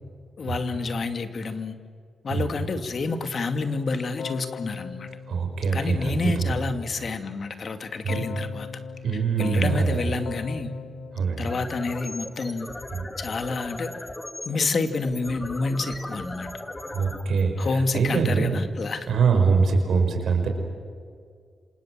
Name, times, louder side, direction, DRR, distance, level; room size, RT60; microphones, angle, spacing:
voice 1, 0.4-1.8 2.2-5.1 5.7-8.7 9.4-10.7 11.4-12.7 13.2-13.9 14.4-16.5 17.6-19.1, left 3 dB, 60° left, 8 dB, 2.4 m, -28 dB
Keyboard (musical), 4.2-6.5 8.1-12.4, left 6 dB, 85° left, 1.7 m, -39 dB
voice 2, 5.3-6.6 8.0-8.2 9.0-10.1 11.1-11.5 12.9-13.1 16.9-18.5 19.1-20.5, right 5 dB, 80° right, 5 dB, 5.1 m, -23 dB
sound 1, 11.4-18.4, left 1 dB, 20° left, 3.0 m, -38 dB
28.0 x 26.5 x 7.6 m, 2.1 s
cardioid pair, 60°, 0 cm